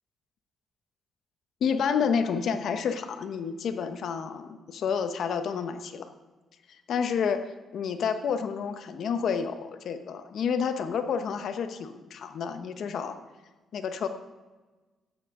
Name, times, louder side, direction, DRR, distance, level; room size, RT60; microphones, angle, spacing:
voice 1, 1.6-6.1 6.7-7.4 7.7-13.1 13.7-14.1, left 6 dB, 70° left, 8 dB, 1.0 m, -29 dB
13.5 x 9.5 x 3.7 m, 1.2 s
cardioid pair, 75°, 0 cm